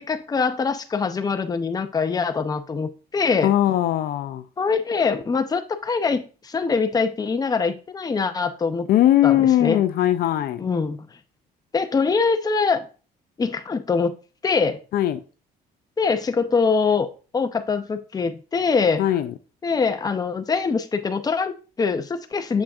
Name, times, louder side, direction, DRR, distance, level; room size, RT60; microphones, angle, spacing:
voice 1, 0.0-3.5 4.6-8.9 9.2-9.8 10.6-11.1 11.7-12.9 13.4-14.1 14.4-14.8 16.0-17.1 17.3-19.1 19.6-22.6, left 5 dB, 20° left, 0.7 m, -23 dB
voice 2, 3.4-4.4 8.9-10.6 14.9-15.2 19.0-19.3, left 12 dB, 65° left, 0.5 m, -19 dB
7.3 x 6.1 x 2.4 m
cardioid pair, 110°, 17 cm